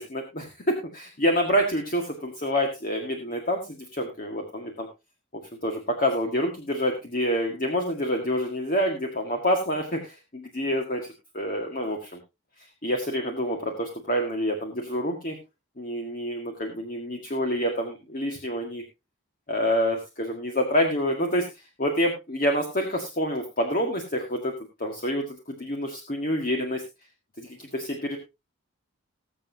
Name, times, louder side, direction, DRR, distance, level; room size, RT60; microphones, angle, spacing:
voice 1, 0.0-4.9 5.6-11.1 11.3-12.1 12.8-15.4 15.8-18.8 19.5-26.8 27.4-28.2, equal, 40° left, 3 dB, 1.8 m, -27 dB
20.5 x 7.5 x 2.8 m, 0.25 s
head